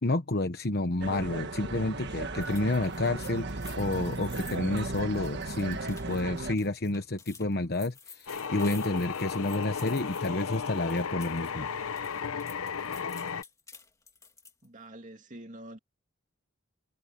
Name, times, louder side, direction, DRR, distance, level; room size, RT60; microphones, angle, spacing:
voice 1, 0.0-11.7, left 2 dB, 50° left, 1.1 m, -30 dB
sound 1, 1.0-6.6, right 3 dB, 55° right, 1.6 m, -36 dB
sound 2, 2.4-11.5 11.8-14.7, left 5 dB, 15° left, 1.9 m, -51 dB
sound 3, 8.3-13.4, left 6 dB, 85° left, 0.9 m, -34 dB
voice 2, 14.6-15.8, right 1 dB, 35° right, 2.5 m, -46 dB
open air
head